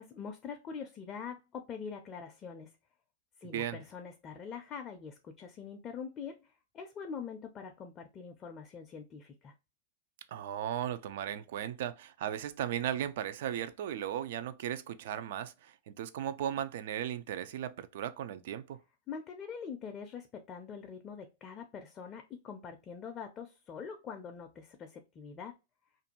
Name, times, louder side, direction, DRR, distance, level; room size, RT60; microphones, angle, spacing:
voice 1, 0.0-2.8 3.4-9.5 19.1-25.6, left 6 dB, 30° left, 0.4 m, -44 dB
voice 2, 3.4-3.8 10.3-18.8, right 10 dB, 65° right, 0.3 m, -36 dB
2.5 x 2.2 x 2.8 m
hypercardioid pair, 125°, 0 cm